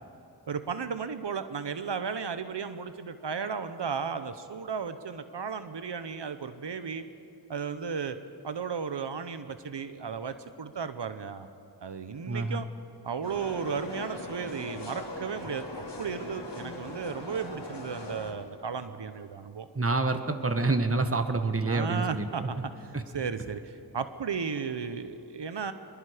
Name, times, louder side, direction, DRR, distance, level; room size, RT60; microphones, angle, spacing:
voice 1, 0.5-7.0 7.5-8.2 8.4-11.5 11.8-12.7 13.0-19.7 21.0-21.1 21.7-25.7, right 6 dB, 85° right, 10 dB, 0.8 m, -35 dB
voice 2, 12.3-12.6 19.7-22.5 22.9-23.0, right 3 dB, 35° right, 8 dB, 1.2 m, -27 dB
sound 1, 13.2-18.3, left 2 dB, 85° left, 2.9 m, -40 dB
24.0 x 22.0 x 5.0 m, 2.8 s
wide cardioid pair, 45°, 41 cm